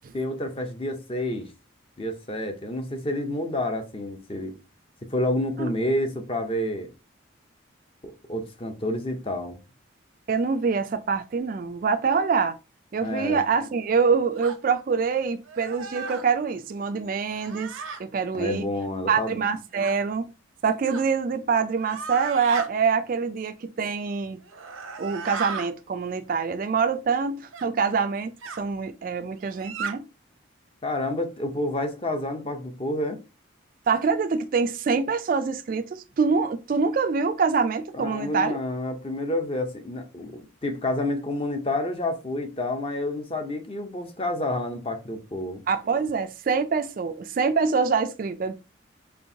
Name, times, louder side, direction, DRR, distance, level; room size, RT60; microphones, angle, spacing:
voice 1, 0.1-1.5 2.0-4.5 5.1-6.9 8.0-9.6 13.0-13.4 18.3-19.4 30.8-33.2 37.9-45.6, left 1 dB, 25° left, 0.6 m, -29 dB
voice 2, 10.3-12.6 12.9-17.7 18.0-18.7 19.1-20.3 20.6-24.4 25.0-28.3 28.6-30.1 33.9-38.6 45.7-48.5, right 5 dB, 45° right, 0.3 m, -25 dB
sound 1, 14.4-14.6 15.4-16.3 17.3-18.0 19.8-20.0 20.9-21.1 21.8-22.7 24.4-25.7 27.5-27.7 28.4-28.6 29.4-29.9, right 5 dB, 90° right, 0.7 m, -35 dB
4.5 x 3.1 x 2.7 m
head